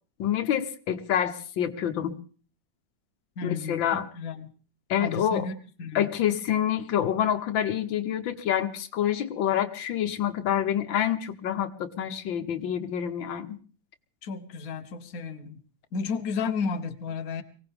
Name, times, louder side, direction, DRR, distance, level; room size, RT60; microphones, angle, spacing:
voice 1, 0.2-2.2 3.4-4.1 4.9-5.5 5.9-13.5, left 10 dB, 90° left, 9 dB, 1.8 m, -27 dB
voice 2, 3.4-4.5 5.0-6.1 14.2-15.6 15.9-17.4, left 5 dB, 55° left, 7 dB, 1.4 m, -33 dB
23.5 x 17.0 x 3.5 m, 0.40 s
omnidirectional pair, 2.0 m